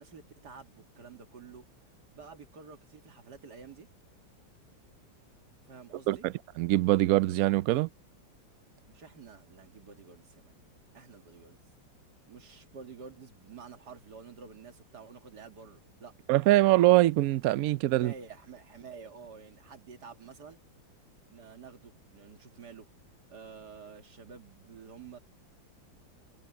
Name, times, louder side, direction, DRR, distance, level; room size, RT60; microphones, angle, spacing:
voice 1, 0.0-1.7 2.1-3.9 5.7-6.3 8.9-10.6 10.9-11.6 12.3-16.1 17.9-20.6 21.3-22.9 23.3-25.2, right 5 dB, 55° right, 2.7 m, -49 dB
voice 2, 6.1-7.9 16.3-18.1, right 17 dB, 85° right, 0.7 m, -23 dB
omnidirectional pair, 2.1 m